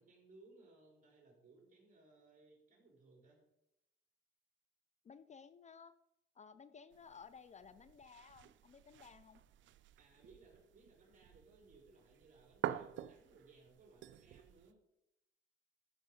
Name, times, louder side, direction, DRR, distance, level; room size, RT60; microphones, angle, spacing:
voice 1, 0.0-3.4 10.0-14.8, right 3 dB, 40° right, -1 dB, 4.5 m, -64 dB
voice 2, 5.0-5.9 6.3-9.4, left 6 dB, 35° left, 13 dB, 0.5 m, -57 dB
sound 1, 6.9-14.7, right 11 dB, 70° right, 0.5 m, -48 dB
13.0 x 5.3 x 5.4 m, 0.85 s
cardioid pair, 90°, 20 cm